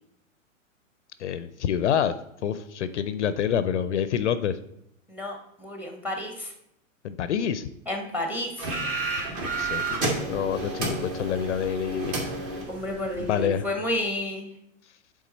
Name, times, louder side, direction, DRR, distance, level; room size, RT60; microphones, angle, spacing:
voice 1, 1.2-2.2 2.4-4.6 7.0-7.7 9.1-10.0 10.3-12.2 13.3-13.7, left 8 dB, 60° left, 13 dB, 0.5 m, -27 dB
voice 2, 5.1-6.5 7.9-8.7 12.7-14.5, left 1 dB, 5° right, 4 dB, 1.0 m, -31 dB
sound 1, 8.6-13.5, right 2 dB, 30° right, 1.6 m, -31 dB
8.1 x 3.7 x 4.1 m, 0.75 s
figure-of-eight pair, 105°, 40 cm